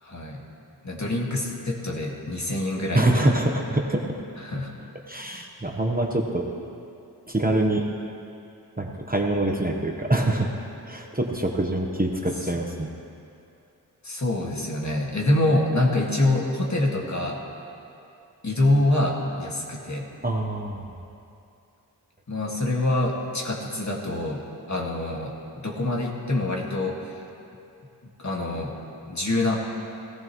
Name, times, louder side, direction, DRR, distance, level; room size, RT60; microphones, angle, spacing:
voice 1, 0.0-0.4 0.8-3.3 4.4-4.7 8.9-9.0 14.0-17.4 18.4-20.1 22.3-24.4 24.7-27.1 28.2-28.7 29.1-29.6, left 1 dB, 45° left, -2 dB, 2.0 m, -25 dB
voice 2, 2.9-4.0 5.1-6.5 7.3-7.9 8.8-10.5 10.9-12.9 20.2-20.8, right 1 dB, 20° right, 1 dB, 1.1 m, -25 dB
17.5 x 14.5 x 3.1 m, 2.6 s
wide cardioid pair, 60°, 40 cm